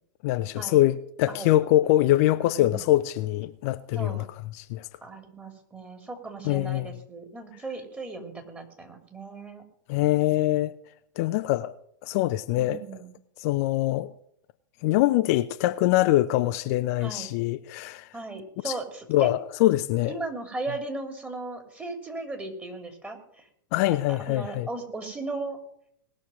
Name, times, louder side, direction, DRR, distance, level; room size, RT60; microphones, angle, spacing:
voice 1, 0.2-4.2 4.5-4.9 6.4-6.9 9.9-10.7 11.2-11.7 12.0-12.8 13.4-14.1 14.8-18.1 18.6-18.7 19.1-20.2 23.7-24.7, left 15 dB, 45° left, 0.6 m, -23 dB
voice 2, 3.9-4.2 5.0-9.6 12.6-13.1 17.0-17.3 18.1-19.3 20.1-23.5 24.1-25.6, right 3 dB, 15° right, 3.0 m, -37 dB
19.5 x 6.5 x 7.5 m
figure-of-eight pair, 100°, 11 cm